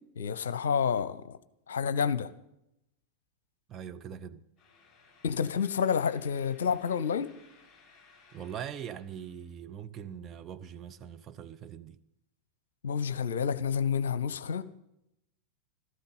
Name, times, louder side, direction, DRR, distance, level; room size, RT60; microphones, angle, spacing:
voice 1, 0.2-1.4 1.7-2.3 5.2-7.3 12.8-14.7, left 7 dB, 65° left, 0.8 m, -29 dB
voice 2, 3.7-4.4 8.3-12.0, right 8 dB, 25° right, 0.9 m, -42 dB
sound 1, 4.6-9.5, left 4 dB, 15° left, 6.0 m, -60 dB
15.5 x 13.5 x 5.6 m
figure-of-eight pair, 90°, 0 cm